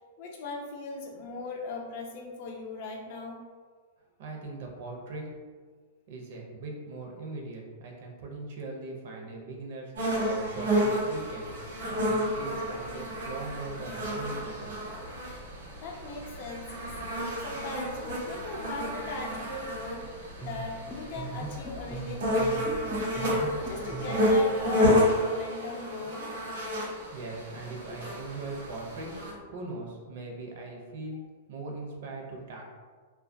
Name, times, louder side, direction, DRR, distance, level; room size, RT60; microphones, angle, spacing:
voice 1, 0.2-3.4 15.8-16.9 17.4-23.2 23.6-26.3, left 2 dB, 55° left, 0 dB, 0.5 m, -39 dB
voice 2, 4.2-5.5 6.1-9.9 10.2-11.5 11.8-14.7 27.1-29.1 29.5-32.8, right 2 dB, 60° right, 0 dB, 0.5 m, -40 dB
sound 1, 10.0-29.3, equal, 85° right, 0.9 m, -30 dB
sound 2, 20.4-24.3, right 3 dB, ahead, 0.3 m, -40 dB
2.2 x 2.2 x 2.5 m, 1.5 s
hypercardioid pair, 140°, 0 cm